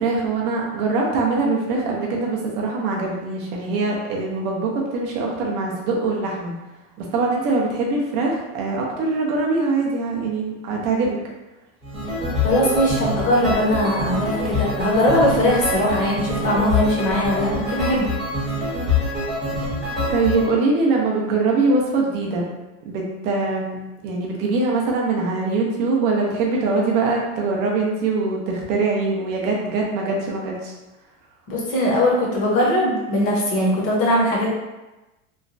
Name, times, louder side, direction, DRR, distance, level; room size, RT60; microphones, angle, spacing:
voice 1, 0.0-6.5 7.0-11.2 20.1-22.5 22.8-30.7, right 3 dB, 30° right, -1 dB, 0.4 m, -23 dB
sound 1, 11.8-20.5, left 2 dB, ahead, 0.7 m, -25 dB
voice 2, 12.4-18.1 31.5-34.5, left 1 dB, 35° left, -4 dB, 0.8 m, -20 dB
3.0 x 2.1 x 2.5 m, 1.1 s
supercardioid pair, 160°, 38 cm